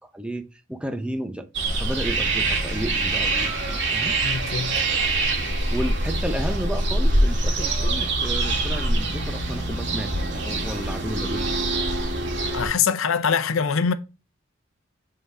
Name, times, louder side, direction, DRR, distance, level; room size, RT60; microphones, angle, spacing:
voice 1, 0.1-1.5 1.8-4.2 5.7-11.5, right 1 dB, 5° right, 0.7 m, -32 dB
sound 1, 1.5-12.7, right 2 dB, 60° right, 2.0 m, -24 dB
voice 2, 4.2-4.8 12.5-13.9, left 6 dB, 80° left, 0.6 m, -23 dB
7.7 x 3.9 x 4.7 m
head